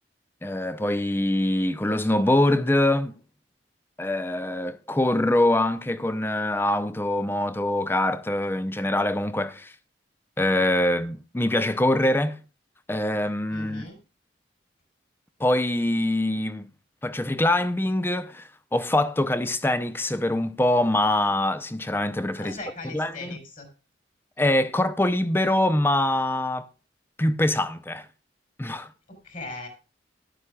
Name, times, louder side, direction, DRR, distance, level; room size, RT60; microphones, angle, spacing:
voice 1, 0.4-3.1 4.0-9.7 10.4-12.4 12.9-13.8 15.4-16.7 17.0-22.6 22.9-23.4 24.4-26.7 27.2-28.1 28.6-28.9, left 1 dB, 10° left, 0.5 m, -24 dB
voice 2, 13.5-14.0 22.4-23.7 29.1-29.7, left 2 dB, 45° left, 3.6 m, -38 dB
14.0 x 11.5 x 2.3 m
head